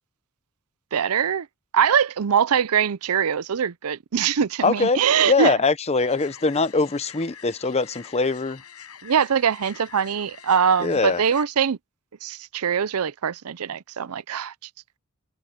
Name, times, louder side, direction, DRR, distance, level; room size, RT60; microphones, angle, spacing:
voice 1, 0.9-1.5 1.7-5.5 9.0-11.8 12.2-14.5, right 7 dB, 80° right, 0.5 m, -22 dB
voice 2, 4.6-8.6 10.8-11.2, left 4 dB, 30° left, 0.8 m, -22 dB
sound 1, 6.0-11.5, left 8 dB, 90° left, 7.3 m, -45 dB
head